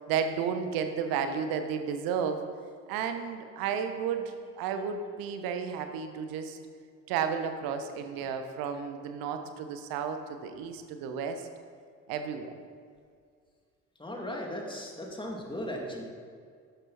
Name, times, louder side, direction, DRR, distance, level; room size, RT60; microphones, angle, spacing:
voice 1, 0.0-2.4 2.9-6.6 7.1-11.5 12.1-12.5, right 7 dB, 60° right, 7 dB, 1.3 m, -32 dB
voice 2, 14.0-16.0, equal, 10° left, -1 dB, 2.8 m, -37 dB
12.0 x 11.0 x 4.3 m, 2.1 s
figure-of-eight pair, 50°, 39 cm